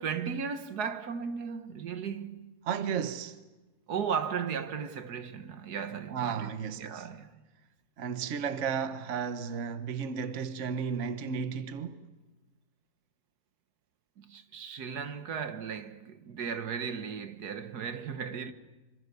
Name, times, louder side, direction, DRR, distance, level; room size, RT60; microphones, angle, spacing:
voice 1, 0.0-2.5 3.9-7.3 14.2-18.5, right 6 dB, 75° right, 1.7 m, -36 dB
voice 2, 2.6-3.4 6.1-7.1 8.0-12.0, right 7 dB, 50° right, 1.3 m, -33 dB
26.0 x 25.5 x 6.8 m
omnidirectional pair, 1.7 m